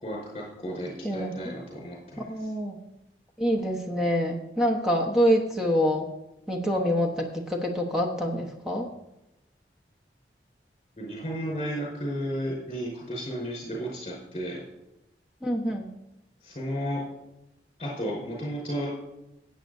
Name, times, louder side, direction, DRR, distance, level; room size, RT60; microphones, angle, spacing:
voice 1, 0.0-2.3 11.0-14.6 16.4-17.0 17.8-18.9, equal, 35° left, -3 dB, 4.9 m, -33 dB
voice 2, 1.0-1.5 2.3-2.7 3.4-6.1 6.5-8.9 15.4-15.9, equal, 5° right, 1 dB, 1.1 m, -26 dB
19.5 x 8.3 x 2.7 m, 0.92 s
head